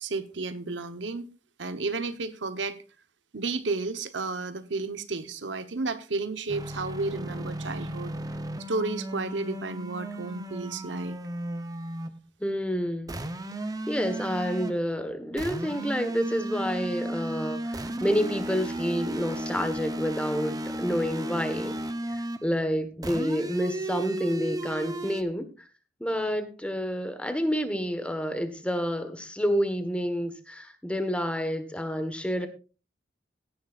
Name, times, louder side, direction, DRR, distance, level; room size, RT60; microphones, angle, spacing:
voice 1, 0.0-1.3 1.6-2.8 3.3-8.1 8.7-11.2, right 3 dB, 85° right, 1.1 m, -32 dB
sound 1, 6.5-12.2 13.1-14.8 15.4-22.5 23.0-25.2, right 1 dB, 20° right, 0.8 m, -34 dB
voice 2, 12.4-13.2 13.9-21.8 22.1-25.5 26.0-32.5, equal, 5° left, 1.4 m, -29 dB
17.0 x 10.5 x 2.5 m
head